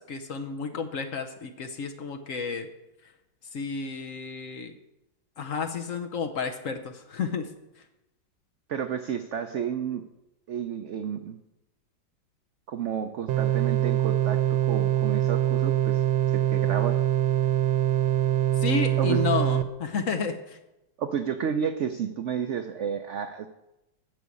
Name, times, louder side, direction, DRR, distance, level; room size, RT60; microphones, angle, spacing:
voice 1, 0.0-2.7 3.0-3.1 3.5-4.8 5.4-7.5 7.7-7.9 18.5-20.6, left 5 dB, 55° left, 5 dB, 1.0 m, -31 dB
voice 2, 8.7-10.0 10.5-11.4 12.7-16.0 16.5-17.0 19.0-19.2 21.0-23.5, right 8 dB, 85° right, 8 dB, 0.6 m, -31 dB
sound 1, 13.3-19.6, right 12 dB, 70° right, 1.1 m, -24 dB
9.3 x 6.2 x 8.2 m, 0.93 s
omnidirectional pair, 2.0 m